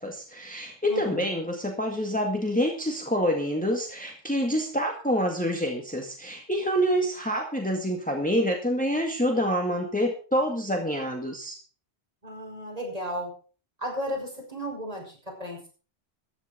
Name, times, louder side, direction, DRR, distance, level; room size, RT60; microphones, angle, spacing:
voice 1, 0.0-11.6, equal, 5° left, 2 dB, 1.9 m, -27 dB
voice 2, 0.9-1.4 12.2-13.3 13.8-15.7, equal, 35° right, -1 dB, 6.0 m, -34 dB
14.5 x 10.0 x 5.0 m, 0.38 s
omnidirectional pair, 1.1 m